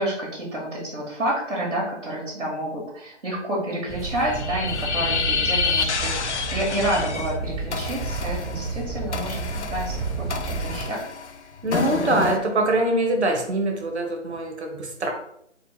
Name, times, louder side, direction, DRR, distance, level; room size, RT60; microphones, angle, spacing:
voice 1, 0.0-11.1, right 1 dB, 80° right, -3 dB, 1.4 m, -29 dB
sound 1, 3.9-10.9, right 3 dB, ahead, 0.3 m, -31 dB
sound 2, 4.1-7.3 7.7-12.4, left 5 dB, 65° left, 0.5 m, -28 dB
voice 2, 11.6-15.1, right 2 dB, 60° right, 3 dB, 0.9 m, -23 dB
4.3 x 2.1 x 3.0 m, 0.73 s
figure-of-eight pair, 170°, 37 cm